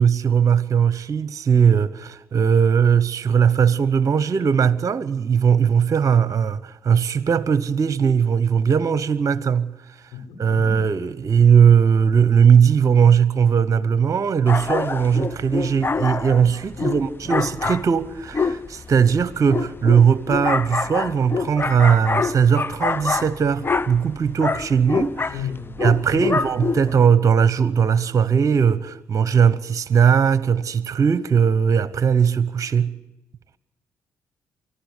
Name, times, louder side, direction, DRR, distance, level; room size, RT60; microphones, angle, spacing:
voice 1, 0.0-9.7 10.4-25.4 25.8-32.9, right 7 dB, 50° right, 1.0 m, -19 dB
voice 2, 10.1-10.7 16.8-17.0 25.3-25.8 26.1-26.3, left 7 dB, 75° left, 5.9 m, -33 dB
sound 1, 14.5-27.1, left 4 dB, 30° left, 1.0 m, -26 dB
25.0 x 14.5 x 8.2 m
hypercardioid pair, 50°, 7 cm